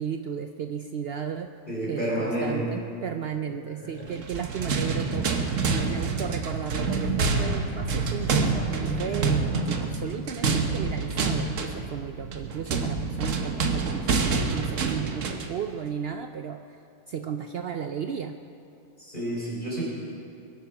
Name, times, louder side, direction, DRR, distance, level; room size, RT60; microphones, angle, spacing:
voice 1, 0.0-1.5 1.9-9.4 9.8-16.8 17.1-18.4, right 7 dB, 75° right, 7 dB, 0.5 m, -34 dB
voice 2, 1.7-2.8 3.5-4.1 19.0-19.8, right 1 dB, 30° left, -7 dB, 4.0 m, -30 dB
sound 1, 4.2-15.6, right 4 dB, 55° right, 1.3 m, -27 dB
21.5 x 9.5 x 5.9 m, 2.5 s
omnidirectional pair, 1.7 m